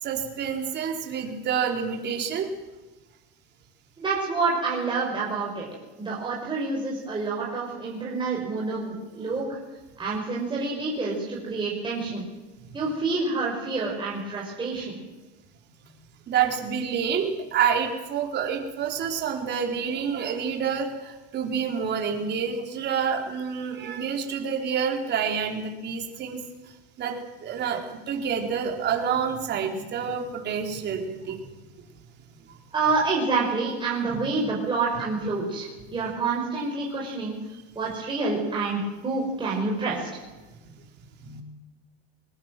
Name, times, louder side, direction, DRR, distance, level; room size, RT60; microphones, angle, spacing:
voice 1, 0.0-2.5 12.6-12.8 16.3-26.4 27.0-27.1 27.4-31.4 34.1-34.2 41.2-41.4, right 7 dB, 35° right, 2 dB, 4.6 m, -28 dB
voice 2, 4.0-5.7 6.0-9.6 10.0-12.3 12.7-15.0 32.7-37.4 37.7-40.1, right 3 dB, 15° right, -4 dB, 5.9 m, -28 dB
22.0 x 20.0 x 7.8 m, 1.2 s
supercardioid pair, 135°, 29 cm